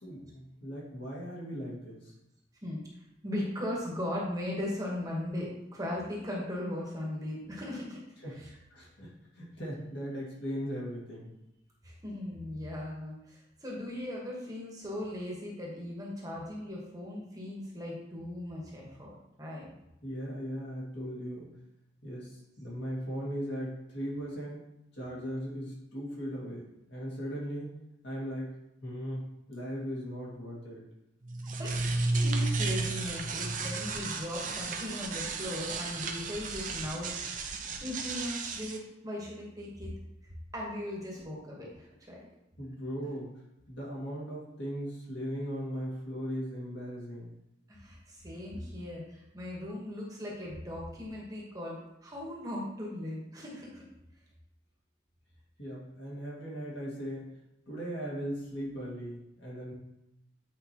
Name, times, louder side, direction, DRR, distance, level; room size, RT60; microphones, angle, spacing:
voice 1, 0.0-2.1 8.2-8.4 8.7-11.3 20.0-21.5 22.0-24.6 24.9-26.6 26.9-27.7 28.0-28.6 28.8-30.8 42.6-43.4 43.7-47.3 55.6-57.3 57.7-59.7, equal, 60° left, -5 dB, 2.2 m, -38 dB
voice 2, 3.2-8.5 11.8-19.7 31.4-39.9 40.2-42.2 47.7-53.8, left 1 dB, 20° right, -3 dB, 1.3 m, -38 dB
sound 1, 31.2-38.8, right 3 dB, 40° right, 0.6 m, -33 dB
8.4 x 4.8 x 3.0 m, 0.87 s
head